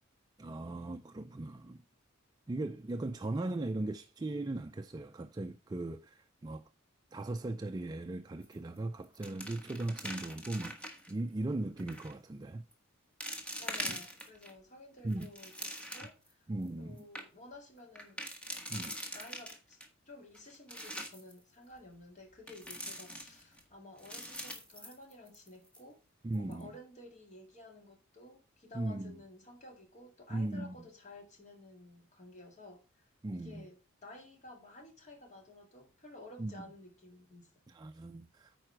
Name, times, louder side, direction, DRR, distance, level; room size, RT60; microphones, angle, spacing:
voice 1, 0.4-1.8 2.5-6.6 7.1-10.8 11.1-12.6 13.8-14.0 15.0-15.3 16.5-17.0 18.7-19.0 26.2-26.7 28.7-29.1 30.3-30.7 33.2-33.7 36.4-36.6 37.7-38.6, right 2 dB, 20° right, 0.3 m, -38 dB
sound 1, 8.4-8.8 9.0-11.1 11.8-12.1 12.7-12.8 13.2-14.5 15.0-16.3 16.7-16.8 17.0-17.2 18.0-19.9 20.3-21.3 22.5-23.6 24.0-25.5 25.7-25.8 26.3-26.6, equal, 5° left, 1.3 m, -43 dB
voice 2, 13.6-16.4 16.8-18.2 18.7-19.8 20.1-26.0 26.4-32.8 33.3-37.6, left 2 dB, 35° left, 2.2 m, -53 dB
9.2 x 4.8 x 4.5 m
head